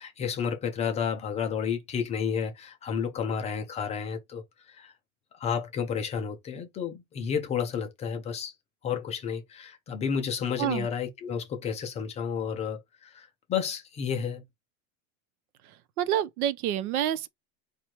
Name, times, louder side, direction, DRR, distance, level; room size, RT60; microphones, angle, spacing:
voice 1, 0.0-4.9 5.3-8.5 8.8-14.4, left 7 dB, 15° left, 0.4 m, -31 dB
voice 2, 16.0-17.3, right 11 dB, 80° right, 0.8 m, -27 dB
4.5 x 2.4 x 4.3 m
supercardioid pair, 155°, 43 cm